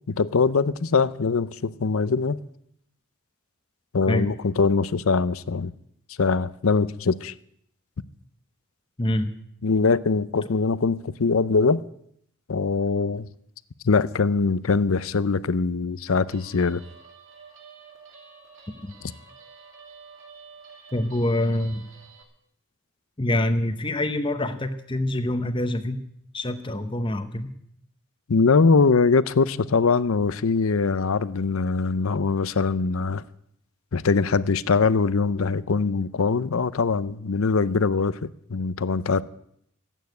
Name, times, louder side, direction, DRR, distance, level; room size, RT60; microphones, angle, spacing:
voice 1, 0.1-2.4 3.9-5.7 6.2-7.3 9.6-11.8 12.5-13.3 13.8-16.8 28.3-33.2 33.9-38.2 38.5-39.2, left 4 dB, 75° left, 0.6 m, -22 dB
voice 2, 9.0-9.3 18.7-18.9 20.9-21.8 23.2-26.0 26.3-27.5, left 1 dB, 25° left, 0.8 m, -25 dB
Guitar, 16.3-22.2, right 5 dB, 60° right, 2.7 m, -49 dB
14.0 x 9.1 x 9.4 m
head